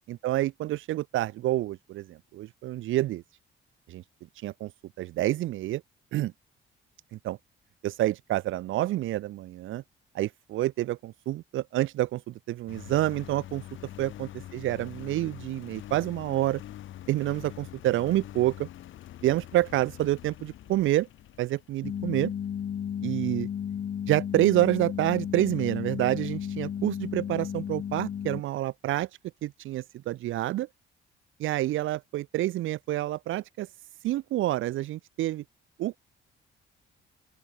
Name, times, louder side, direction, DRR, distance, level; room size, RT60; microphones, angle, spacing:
voice 1, 0.1-3.2 3.9-4.0 4.4-4.7 5.0-5.8 6.1-6.3 7.1-7.4 7.8-9.8 10.1-13.6 14.0-16.6 17.1-18.7 19.2-21.1 21.4-22.3 23.0-23.5 24.1-29.1 29.4-30.7 31.4-33.7 34.0-35.4 35.8-36.0, right 15 dB, 80° right, 0.8 m, -28 dB
Engine, 12.7-22.1, left 13 dB, 80° left, 7.6 m, -45 dB
sound 1, 21.8-28.4, left 8 dB, 55° left, 2.8 m, -33 dB
open air
cardioid pair, 90°, 20 cm